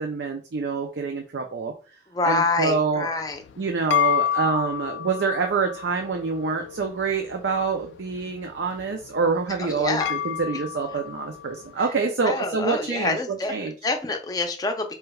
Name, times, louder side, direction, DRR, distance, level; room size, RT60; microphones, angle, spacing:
voice 1, 0.0-1.7 2.2-3.1 3.6-13.2 13.5-13.7, right 4 dB, 75° right, 4 dB, 0.5 m, -26 dB
voice 2, 2.1-3.4 9.6-10.1 11.8-11.9 12.2-15.0, left 3 dB, 20° left, 4 dB, 0.5 m, -27 dB
sound 1, 3.3-11.8, left 9 dB, 80° left, 0.3 m, -31 dB
4.4 x 3.3 x 2.3 m, 0.36 s
head